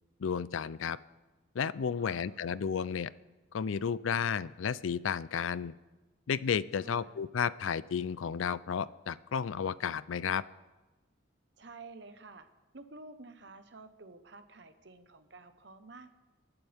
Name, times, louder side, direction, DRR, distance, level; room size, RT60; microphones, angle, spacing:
voice 1, 0.2-1.0 1.5-3.1 3.5-5.7 6.3-10.4, left 7 dB, 85° left, 18 dB, 0.4 m, -32 dB
voice 2, 2.0-2.5 6.8-7.2 11.6-12.5 12.7-16.1, right 3 dB, 60° right, 9 dB, 1.0 m, -51 dB
28.0 x 11.5 x 3.5 m, 1.2 s
head